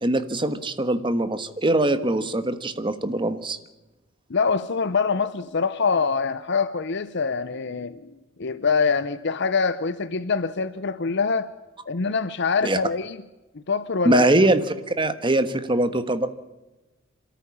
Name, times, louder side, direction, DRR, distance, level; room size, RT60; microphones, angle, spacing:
voice 1, 0.0-3.6 12.6-12.8 14.0-14.6 14.9-16.3, right 1 dB, 25° right, 10 dB, 1.4 m, -22 dB
voice 2, 4.3-8.1 8.4-11.5 11.9-13.2 13.5-14.3, left 5 dB, 60° left, 13 dB, 0.8 m, -24 dB
27.0 x 13.5 x 8.6 m, 1.1 s
head